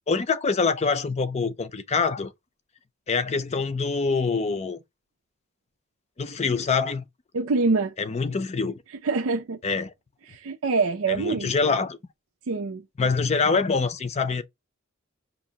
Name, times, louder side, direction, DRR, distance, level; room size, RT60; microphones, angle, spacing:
voice 1, 0.1-2.3 3.1-4.8 6.2-7.0 8.0-8.8 9.6-9.9 11.1-12.0 13.0-14.4, left 4 dB, 30° left, 0.5 m, -25 dB
voice 2, 7.3-7.9 9.0-9.6 10.3-11.7 12.5-12.8, right 4 dB, 90° right, 0.5 m, -25 dB
5.1 x 2.8 x 2.8 m
head